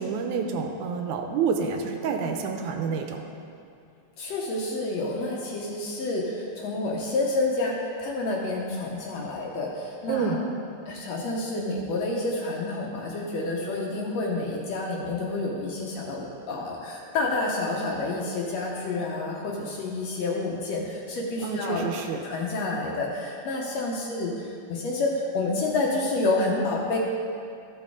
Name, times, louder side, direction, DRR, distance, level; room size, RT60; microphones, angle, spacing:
voice 1, 0.0-3.2 10.1-10.4 21.4-22.2, right 5 dB, 80° right, 4 dB, 2.0 m, -28 dB
voice 2, 4.2-10.4 10.9-21.8 22.2-24.3 24.7-27.0, left 2 dB, 70° left, -2 dB, 1.9 m, -29 dB
13.0 x 6.1 x 3.7 m, 2.4 s
omnidirectional pair, 3.5 m